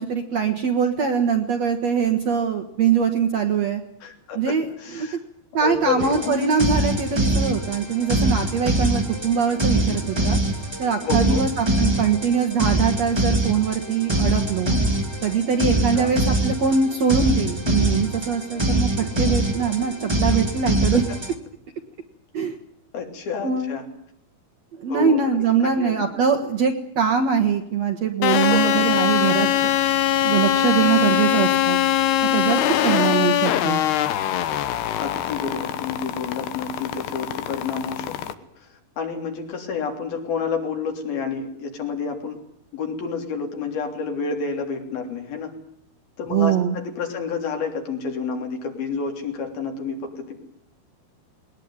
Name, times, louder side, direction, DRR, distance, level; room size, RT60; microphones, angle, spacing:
voice 1, 0.0-3.8 4.4-4.7 4.9-5.1 5.5-10.4 10.8-14.8 15.2-21.0 22.3-22.5 23.4-23.7 24.8-29.7 30.2-31.8 32.3-33.8 46.3-46.8, right 6 dB, 55° right, 5 dB, 2.0 m, -22 dB
voice 2, 4.0-5.2 5.6-6.4 11.1-11.4 15.9-16.1 22.9-23.8 24.9-26.1 28.5-28.9 32.6-33.0 35.0-42.4 42.7-45.5 46.2-50.4, left 5 dB, 70° left, 3 dB, 5.2 m, -29 dB
sound 1, 6.0-21.3, right 1 dB, 20° right, 0.7 m, -23 dB
sound 2, 28.2-38.3, left 12 dB, 85° left, 3.2 m, -22 dB
21.0 x 19.5 x 9.6 m, 0.71 s
omnidirectional pair, 4.5 m